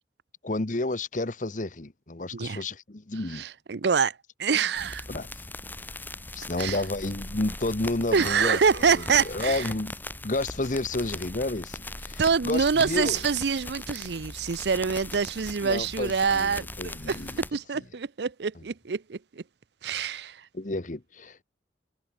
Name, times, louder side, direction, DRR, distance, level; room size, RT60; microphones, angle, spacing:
voice 1, 0.4-3.4 5.1-5.3 6.3-9.9 10.2-13.2 15.6-17.4 20.5-21.4, left 2 dB, 45° left, 1.1 m, -31 dB
voice 2, 2.3-2.6 3.3-5.0 6.6-6.8 8.1-9.7 12.2-19.4 19.8-20.5, right 5 dB, 70° right, 0.6 m, -26 dB
sound 1, 4.7-17.5, left 2 dB, 10° left, 2.1 m, -39 dB
head